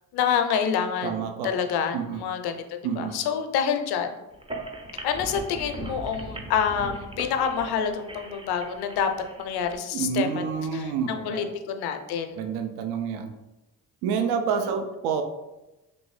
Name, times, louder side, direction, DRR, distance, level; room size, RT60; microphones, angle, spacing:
voice 1, 0.1-4.1 5.0-9.1 9.4-10.4 10.7-12.4, left 7 dB, 70° left, 7 dB, 0.5 m, -27 dB
voice 2, 1.0-1.5 1.9-2.2 2.8-3.2 9.9-11.5 12.4-13.3 14.0-15.2, right 6 dB, 75° right, 7 dB, 0.5 m, -28 dB
sound 1, 4.3-9.8, right 1 dB, 15° right, 0.4 m, -39 dB
3.2 x 2.6 x 3.2 m, 1.0 s
hypercardioid pair, 55°, 40 cm